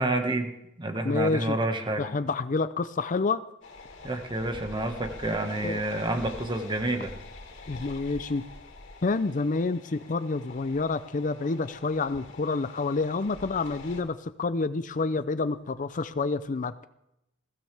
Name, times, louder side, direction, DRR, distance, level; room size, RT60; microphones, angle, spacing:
voice 1, 0.0-2.1 4.0-7.1, right 2 dB, 25° right, 5 dB, 1.6 m, -29 dB
voice 2, 1.0-1.6 2.0-3.4 5.6-5.8 7.7-8.4 9.0-16.9, left 3 dB, 40° left, 13 dB, 0.5 m, -28 dB
sound 1, 3.6-14.0, left 3 dB, 65° left, 3.0 m, -45 dB
21.5 x 16.0 x 3.5 m, 0.86 s
head